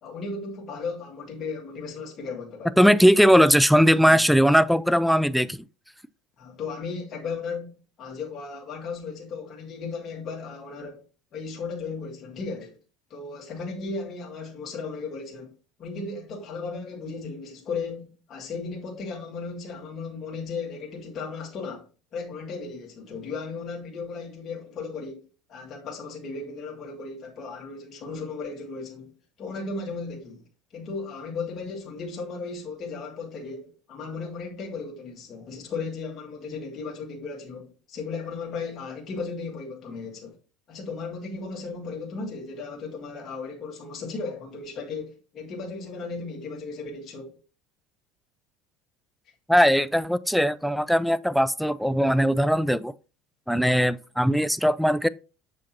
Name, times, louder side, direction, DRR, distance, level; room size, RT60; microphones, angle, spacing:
voice 1, 0.0-2.8 3.2-3.4 4.0-4.2 6.4-11.0 11.3-12.8 13.1-15.5 15.8-25.2 25.5-29.1 29.4-30.4 30.7-40.4 40.7-47.4, left 4 dB, 40° left, 1.8 m, -36 dB
voice 2, 2.8-5.6 49.5-52.9 53.5-55.1, equal, ahead, 0.3 m, -19 dB
7.1 x 5.2 x 2.7 m
supercardioid pair, 110°, 0 cm